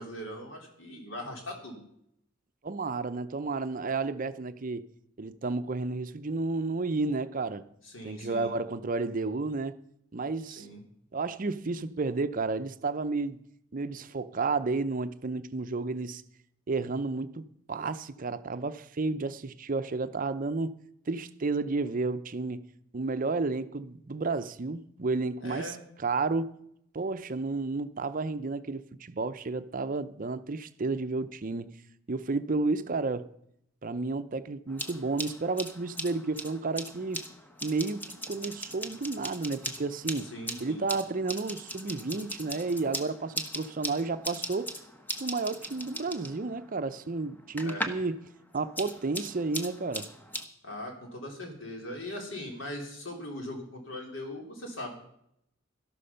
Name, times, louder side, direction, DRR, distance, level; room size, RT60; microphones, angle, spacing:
voice 1, 0.0-1.8 7.8-8.5 10.5-10.8 25.4-25.8 40.2-40.8 47.6-47.9 50.6-54.9, left 1 dB, 85° left, 3.6 m, -40 dB
voice 2, 2.6-4.9 5.2-7.7 8.0-9.8 10.1-10.7 11.1-13.4 13.7-16.2 16.7-20.7 21.1-22.6 22.9-25.7 26.0-26.5 26.9-31.7 32.1-33.3 33.8-37.3 37.6-40.3 40.6-44.7 45.2-48.2 48.5-50.1, right 3 dB, 45° right, 0.6 m, -31 dB
sound 1, 34.7-48.1 48.4-50.4, equal, 10° left, 1.1 m, -39 dB
12.5 x 12.0 x 5.6 m
head